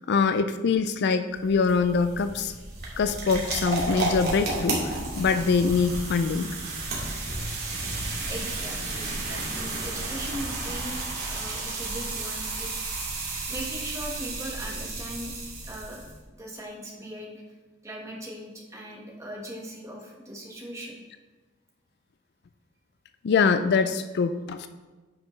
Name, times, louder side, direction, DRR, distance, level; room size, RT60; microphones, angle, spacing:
voice 1, 0.1-2.5 3.0-6.5 23.2-24.7, left 5 dB, 55° left, 10 dB, 0.3 m, -24 dB
sound 1, 1.3-16.2, right 2 dB, 50° right, 2.2 m, -32 dB
voice 2, 8.2-12.7 13.5-15.3 15.6-16.1 16.4-17.4 17.8-21.0, equal, 15° right, -2 dB, 1.3 m, -39 dB
9.5 x 6.5 x 3.1 m, 1.3 s
head